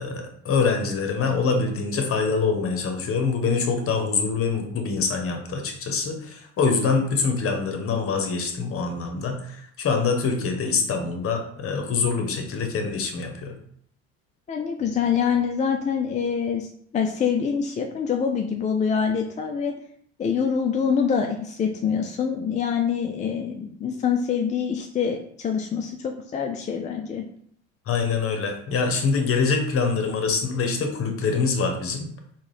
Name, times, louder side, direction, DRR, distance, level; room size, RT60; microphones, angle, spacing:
voice 1, 0.0-13.5 27.9-32.1, left 5 dB, 45° left, 4 dB, 0.9 m, -25 dB
voice 2, 14.5-19.7 20.2-27.2, left 7 dB, 25° left, 2 dB, 0.4 m, -25 dB
3.7 x 2.3 x 3.1 m, 0.64 s
hypercardioid pair, 70°, 33 cm